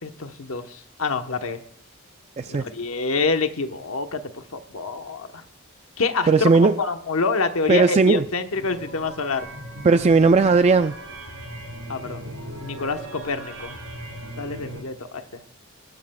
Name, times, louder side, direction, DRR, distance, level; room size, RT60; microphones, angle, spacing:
voice 1, 0.0-1.6 2.5-5.4 6.0-9.5 11.9-12.3 12.6-13.8 14.4-15.4, left 4 dB, 70° left, 7 dB, 1.0 m, -27 dB
voice 2, 6.3-6.8 7.7-8.2 9.8-10.9, right 4 dB, 30° right, 9 dB, 0.4 m, -17 dB
sound 1, 8.5-14.8, right 1 dB, 80° right, 5.7 m, -38 dB
22.0 x 13.0 x 2.3 m, 0.67 s
head